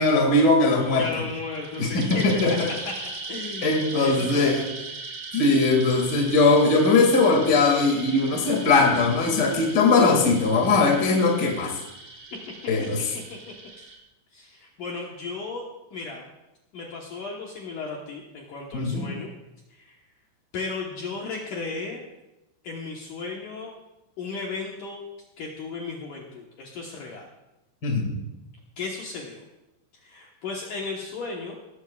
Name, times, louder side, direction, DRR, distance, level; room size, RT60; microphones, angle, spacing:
voice 1, 0.0-1.1 1.8-2.7 3.6-4.6 5.3-11.8 12.7-13.1 18.7-19.1 27.8-28.1, left 3 dB, 45° left, 1 dB, 1.3 m, -20 dB
sound 1, 0.7-14.0, right 3 dB, 85° right, 1.5 m, -39 dB
voice 2, 1.0-2.6 2.9-3.0 3.3-3.7 4.0-4.7 12.3-12.4 12.8-12.9 13.3-13.4 13.8-13.9 14.3-15.6 15.9-16.2 16.7-19.3 19.7-20.0 20.5-22.0 22.6-23.7 24.2-25.0 25.4-27.3 28.8-29.4 30.0-31.6, left 4 dB, 90° left, -1 dB, 1.8 m, -35 dB
18.0 x 14.0 x 2.4 m, 0.95 s
omnidirectional pair, 5.7 m